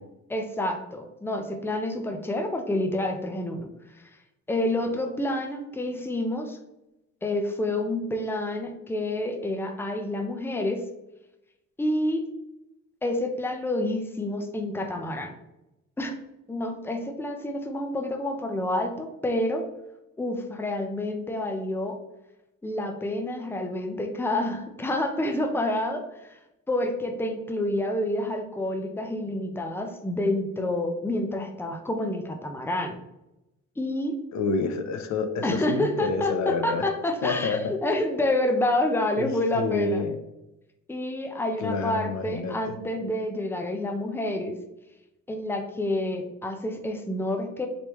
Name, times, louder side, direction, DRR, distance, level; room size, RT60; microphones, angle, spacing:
voice 1, 0.3-3.7 4.5-6.6 7.2-10.8 11.8-12.2 13.0-15.3 16.0-16.1 16.5-19.6 20.2-22.0 22.6-26.4 26.7-32.9 33.8-34.1 35.4-40.0 40.9-44.6 45.3-47.7, left 1 dB, 5° left, 5 dB, 0.7 m, -28 dB
voice 2, 34.3-36.8 37.2-37.7 39.2-39.3 39.5-40.2 41.6-42.7, left 4 dB, 65° left, 7 dB, 0.7 m, -28 dB
5.1 x 3.3 x 3.0 m, 0.92 s
cardioid pair, 90°, 30 cm